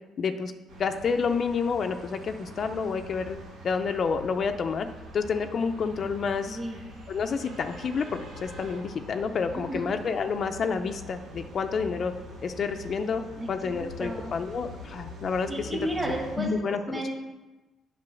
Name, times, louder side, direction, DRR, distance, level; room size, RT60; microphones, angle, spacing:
voice 1, 0.2-0.5 0.8-3.4 3.6-4.9 5.1-6.6 7.1-8.1 8.4-12.1 12.4-13.2 13.5-15.7 16.4-17.1, left 5 dB, 50° left, 7 dB, 0.5 m, -29 dB
sound 1, 0.7-16.4, equal, 90° right, 1.8 m, -44 dB
voice 2, 6.5-6.8 9.5-9.9 13.4-14.3 15.5-17.1, right 1 dB, 15° right, -5 dB, 1.8 m, -33 dB
7.5 x 5.3 x 6.3 m, 1.2 s
cardioid pair, 90°, 0 cm